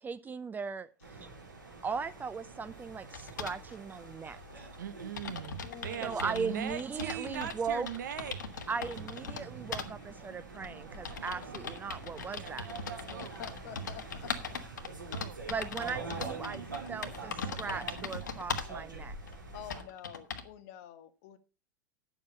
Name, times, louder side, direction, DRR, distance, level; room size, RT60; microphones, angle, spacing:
voice 1, 0.0-1.3 1.8-4.7 6.0-7.9 8.7-12.8 15.5-16.6 16.9-19.1, right 5 dB, 15° right, 0.6 m, -38 dB
sound 1, 1.0-19.8, right 3 dB, 85° right, 4.0 m, -45 dB
sound 2, 3.1-3.6 4.5-4.6 4.8-4.9 5.2-7.6 7.9-9.4 9.7-9.9 10.6-18.8 19.3-19.4 19.7-20.5, left 5 dB, 70° left, 1.3 m, -40 dB
voice 2, 4.8-8.4 11.0-11.5 12.3-13.3 14.8-15.4, right 9 dB, 70° right, 1.2 m, -41 dB
voice 3, 5.6-6.2 13.2-14.3 18.6-18.7 19.5-21.4, left 10 dB, 50° left, 1.3 m, -48 dB
9.8 x 7.3 x 5.6 m
figure-of-eight pair, 90°, 10 cm